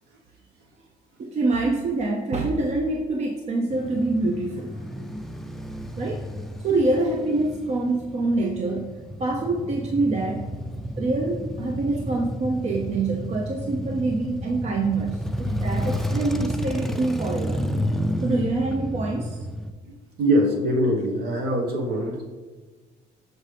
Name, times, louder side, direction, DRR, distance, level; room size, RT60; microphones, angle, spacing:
voice 1, 1.2-4.8 6.0-6.3 6.6-10.5 11.0-17.6 18.2-19.4, right 2 dB, 40° right, 3 dB, 0.6 m, -25 dB
Male speech man speaking / Motorcycle / Idling, 3.7-19.7, equal, ahead, 0.4 m, -31 dB
voice 2, 20.2-22.3, equal, 70° right, 1 dB, 1.2 m, -23 dB
6.5 x 5.2 x 3.3 m, 1.4 s
cardioid pair, 110°, 17 cm